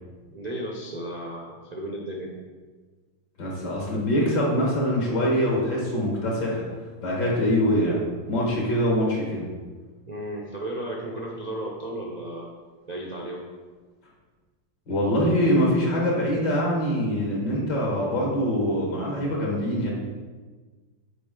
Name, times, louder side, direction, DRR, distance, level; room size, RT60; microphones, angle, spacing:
voice 1, 0.3-2.4 10.0-12.5 12.9-13.5, right 1 dB, 70° right, -2 dB, 0.4 m, -34 dB
voice 2, 3.4-6.6 7.0-9.4 14.9-19.9, equal, 70° left, -3 dB, 2.2 m, -24 dB
7.4 x 4.5 x 3.7 m, 1.4 s
omnidirectional pair, 2.0 m